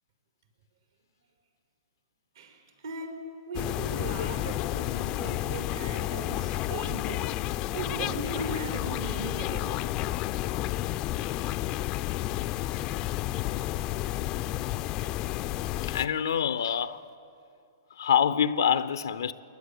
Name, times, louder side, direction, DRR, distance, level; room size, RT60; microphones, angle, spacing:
voice 1, 2.3-7.4 7.7-9.9, right 3 dB, 65° right, 4.4 m, -38 dB
sound 1, 3.5-16.1, left 15 dB, 35° left, 0.6 m, -31 dB
voice 2, 15.9-17.0 17.9-19.3, left 8 dB, 70° left, 0.7 m, -27 dB
28.5 x 11.0 x 8.4 m
figure-of-eight pair, 115°, 2 cm